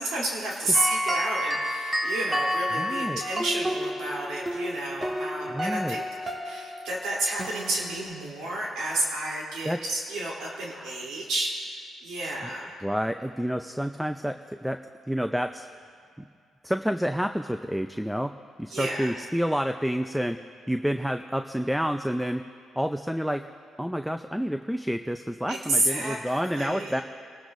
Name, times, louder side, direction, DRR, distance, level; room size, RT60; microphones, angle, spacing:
voice 1, 0.0-12.7 18.7-19.1 25.5-27.0, right 2 dB, 85° right, -4 dB, 3.2 m, -31 dB
sound 1, 0.7-8.3, equal, 20° right, 1.8 m, -30 dB
voice 2, 2.8-3.2 5.5-6.0 9.7-9.8 10.7-10.9 12.2-12.3 12.8-14.8 15.1-15.7 16.6-18.3 18.6-20.4 20.7-22.4 22.8-23.4 23.8-27.0, equal, ahead, 8 dB, 0.4 m, -29 dB
28.5 x 13.0 x 2.6 m, 2.2 s
cardioid pair, 90°, 0 cm